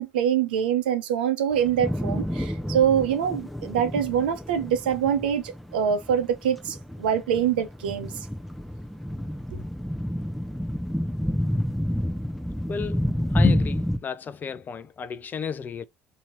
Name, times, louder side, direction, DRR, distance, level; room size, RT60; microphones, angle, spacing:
voice 1, 0.0-8.1 9.5-9.6, right 8 dB, 85° right, 0.6 m, -24 dB
sound 1, 1.5-14.0, equal, ahead, 0.7 m, -29 dB
voice 2, 12.7-15.8, left 7 dB, 35° left, 0.5 m, -31 dB
2.9 x 2.8 x 4.2 m
hypercardioid pair, 65°, 5 cm